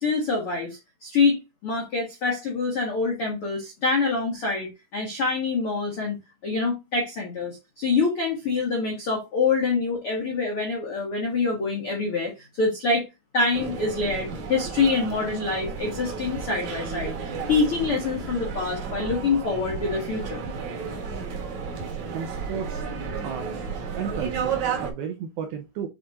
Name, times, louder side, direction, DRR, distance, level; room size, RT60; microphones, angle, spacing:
voice 1, 0.0-6.2 6.4-13.0 13.3-20.4, left 4 dB, 90° left, 1.2 m, -26 dB
sound 1, 13.5-24.9, right 5 dB, 60° right, 1.9 m, -32 dB
voice 2, 22.1-22.9 23.2-23.7 24.0-25.9, right 7 dB, 80° right, 2.2 m, -34 dB
9.0 x 4.2 x 2.5 m
omnidirectional pair, 5.3 m